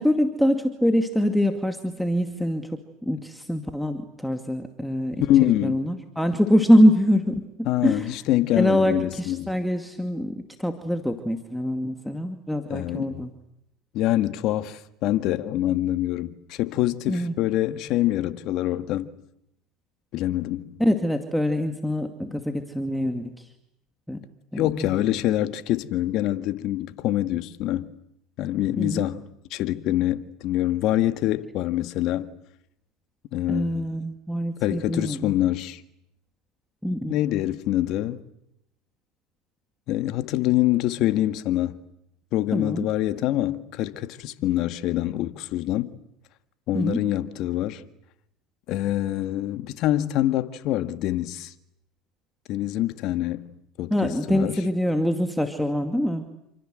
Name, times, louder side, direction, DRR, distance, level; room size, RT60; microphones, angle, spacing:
voice 1, 0.0-7.4 7.8-8.1 8.6-13.3 17.1-17.3 20.8-23.5 24.1-24.2 24.5-25.0 28.8-29.0 33.5-35.3 36.8-37.2 42.5-42.9 46.7-47.0 53.9-56.3, equal, ahead, 2.3 m, -24 dB
voice 2, 5.2-5.8 7.7-9.5 12.7-13.2 13.9-19.1 20.1-20.7 24.6-27.9 28.4-32.3 33.3-33.9 34.6-35.8 37.1-38.2 39.9-41.8 42.3-45.9 46.7-47.8 48.7-51.5 52.5-53.5 53.8-54.6, left 14 dB, 55° left, 1.9 m, -25 dB
28.5 x 26.5 x 7.8 m
hypercardioid pair, 90°, 0 cm